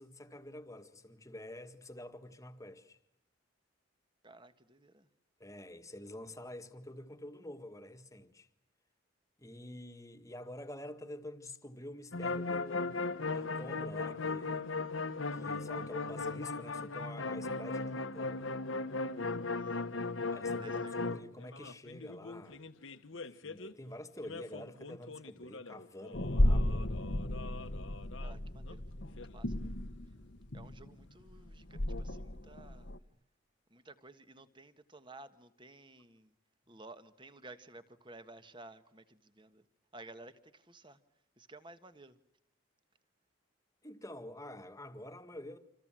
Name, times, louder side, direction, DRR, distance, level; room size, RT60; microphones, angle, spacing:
voice 1, 0.0-3.0 5.4-8.5 9.4-14.7 15.3-18.5 20.3-22.6 23.1-26.9 36.7-36.8 43.8-45.6, left 1 dB, 15° left, 1.7 m, -48 dB
voice 2, 4.2-5.1 19.5-19.9 20.6-21.0 28.2-28.8 29.1-29.7 30.5-32.9 33.7-36.3 36.7-39.6 39.9-41.0 41.4-42.2, right 2 dB, 25° right, 1.6 m, -54 dB
sound 1, 12.1-23.7 24.2-28.4 28.7-28.8 29.0-29.4 31.9-32.0, left 3 dB, 70° left, 1.4 m, -38 dB
sound 2, 26.1-33.0, left 1 dB, 55° left, 1.2 m, -34 dB
27.5 x 27.0 x 7.6 m
head